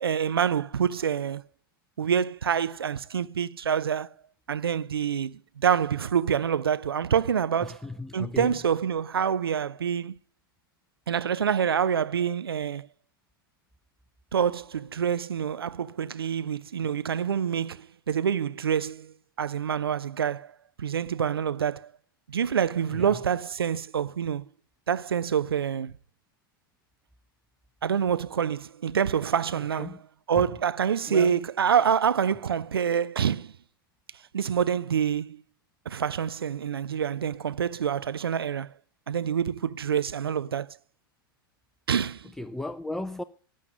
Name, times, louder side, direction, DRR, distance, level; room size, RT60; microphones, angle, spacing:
voice 1, 0.0-1.4 2.0-4.1 4.5-7.8 8.1-10.2 11.1-12.9 14.3-20.5 20.8-21.9 22.3-24.4 24.9-25.9 27.8-30.0 30.3-33.5 34.3-35.4 35.9-38.7 39.1-40.7 41.9-42.3, right 8 dB, 85° right, 0.5 m, -26 dB
voice 2, 7.6-8.5 22.9-23.2 29.8-30.0 30.4-30.5 31.1-31.3 42.4-43.2, left 2 dB, 5° left, 0.5 m, -35 dB
14.0 x 9.4 x 5.3 m
hypercardioid pair, 100°, 12 cm